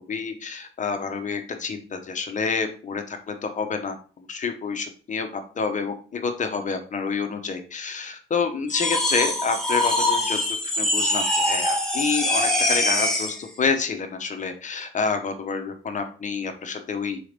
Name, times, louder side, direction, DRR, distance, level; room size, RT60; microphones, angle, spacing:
voice 1, 0.1-10.4 10.8-17.2, left 5 dB, 35° left, 6 dB, 0.8 m, -28 dB
sound 1, 8.7-13.4, left 1 dB, 5° left, 1.0 m, -23 dB
4.7 x 4.3 x 5.1 m, 0.40 s
cardioid pair, 150°, 21 cm